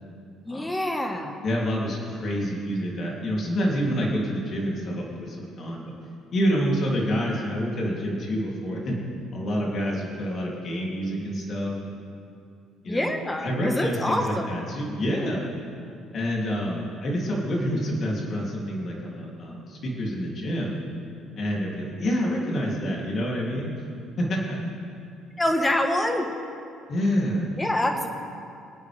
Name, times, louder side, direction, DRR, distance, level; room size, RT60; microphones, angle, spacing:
voice 1, 0.4-1.4 12.9-14.6 25.4-26.3 27.6-28.1, left 1 dB, 15° left, 4 dB, 1.7 m, -26 dB
voice 2, 1.4-5.9 6.3-9.0 9.3-12.0 12.8-13.2 13.4-15.5 16.1-20.8 21.4-23.7 24.2-24.6 26.9-27.6, equal, 50° left, -3 dB, 3.3 m, -27 dB
24.0 x 9.2 x 3.6 m, 2.4 s
supercardioid pair, 90°, 0 cm